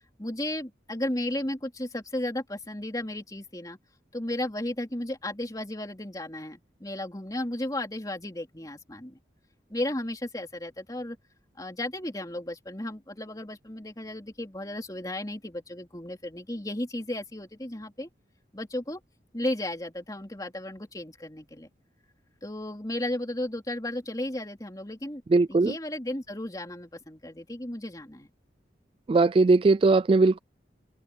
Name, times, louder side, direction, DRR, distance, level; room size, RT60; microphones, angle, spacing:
voice 1, 0.2-3.8 4.1-9.2 9.7-11.2 11.6-18.1 18.5-19.0 19.3-21.7 22.4-25.2 25.5-28.3, left 1 dB, 20° left, 3.3 m, -34 dB
voice 2, 25.3-25.7 29.1-30.4, right 3 dB, 30° right, 0.3 m, -20 dB
head